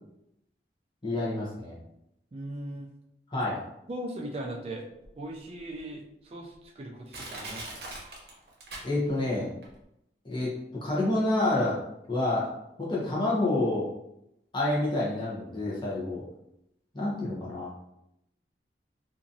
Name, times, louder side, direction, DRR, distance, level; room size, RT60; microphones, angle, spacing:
voice 1, 1.0-1.8 3.3-3.6 8.8-9.5 10.2-10.5 10.8-11.7 12.1-12.5 12.8-13.9 14.5-16.2 16.9-17.7, left 2 dB, 25° left, -7 dB, 0.9 m, -28 dB
voice 2, 2.3-2.9 3.9-4.9 5.2-7.8, right 1 dB, 35° right, 1 dB, 0.4 m, -39 dB
Crushing, 5.0-5.1 5.8-5.9 6.5-6.6 7.1-9.3 9.6-9.7, right 2 dB, 60° right, 0.8 m, -41 dB
2.9 x 2.5 x 2.6 m, 0.80 s
head